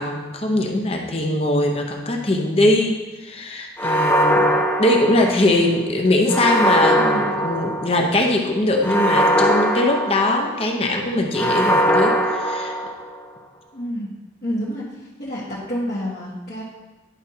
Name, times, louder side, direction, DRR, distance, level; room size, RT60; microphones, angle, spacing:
voice 1, 0.0-4.5 4.8-12.7, left 1 dB, 30° left, 2 dB, 0.8 m, -21 dB
sound 1, 3.8-5.6 6.3-8.1 8.8-10.7 11.3-13.2, equal, 10° left, 0.5 m, -20 dB
voice 2, 7.0-7.3 13.7-14.1 14.4-16.6, equal, 55° left, -8 dB, 1.3 m, -29 dB
11.0 x 5.1 x 2.8 m, 1.1 s
head